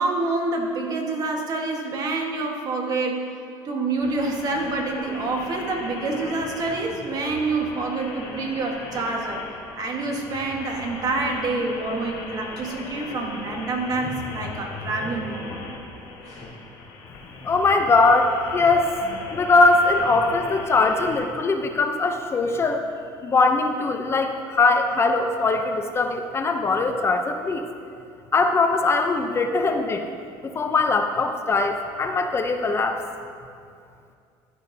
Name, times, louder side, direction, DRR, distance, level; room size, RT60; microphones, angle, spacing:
voice 1, 0.0-3.2 3.6-9.4 9.8-15.6 16.2-16.4, right 3 dB, 45° right, 1 dB, 1.5 m, -27 dB
sound 1, 4.0-21.2, left 3 dB, 75° left, 2.0 m, -38 dB
voice 2, 17.4-19.0 19.3-22.8 23.2-27.6 28.3-30.1 30.4-33.0, left 3 dB, 30° left, 5 dB, 0.6 m, -21 dB
11.5 x 10.5 x 2.7 m, 2.4 s
cardioid pair, 115°, 9 cm